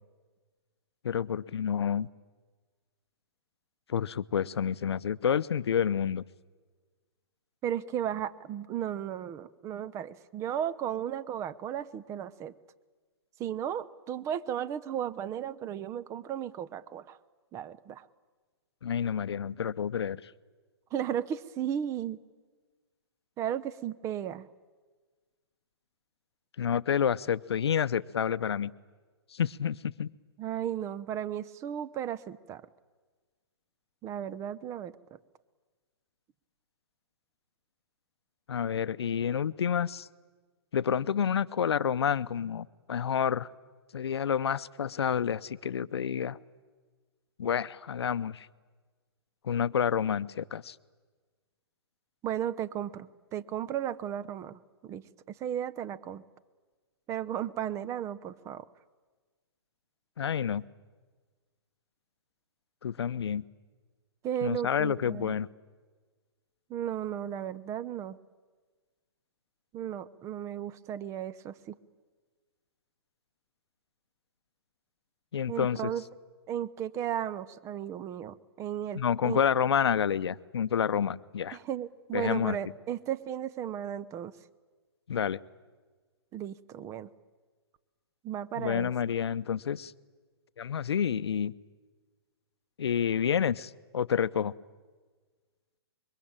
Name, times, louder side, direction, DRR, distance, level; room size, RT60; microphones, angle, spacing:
voice 1, 1.0-2.1 3.9-6.2 18.8-20.2 26.6-28.7 29.3-30.1 38.5-40.1 40.7-43.5 43.9-46.4 47.4-48.5 49.4-50.7 60.2-60.6 62.8-63.4 64.4-65.5 75.3-75.8 78.9-81.6 82.1-82.6 85.1-85.4 88.6-89.9 90.6-91.5 92.8-94.5, left 8 dB, 75° left, 16 dB, 0.8 m, -29 dB
voice 2, 7.6-12.5 13.4-17.2 17.5-18.1 20.9-22.2 23.4-24.5 30.4-32.6 34.0-34.9 52.2-55.0 55.4-56.2 57.1-58.6 64.2-65.4 66.7-68.2 69.7-71.7 75.5-76.0 76.5-79.4 81.5-84.3 86.3-87.1 88.2-88.9, right 10 dB, 20° right, 18 dB, 0.8 m, -35 dB
26.0 x 23.0 x 8.9 m, 1.4 s
hypercardioid pair, 135°, 14 cm